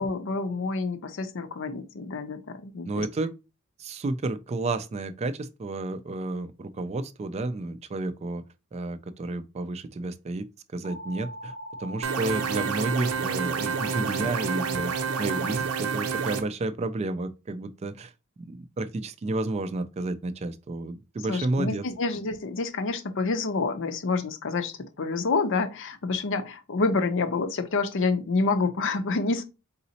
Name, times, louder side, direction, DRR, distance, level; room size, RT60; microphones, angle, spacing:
voice 1, 0.0-3.0 21.3-29.4, left 3 dB, 60° left, 0.6 m, -28 dB
voice 2, 2.9-3.3 3.8-8.4 8.7-10.5 10.7-11.5 11.8-18.1 18.4-21.9, right 2 dB, 30° right, 0.3 m, -31 dB
sound 1, 10.8-15.6, equal, 85° left, 1.2 m, -40 dB
sound 2, 12.0-16.4, right 6 dB, 90° right, 0.6 m, -29 dB
4.0 x 3.9 x 2.8 m
head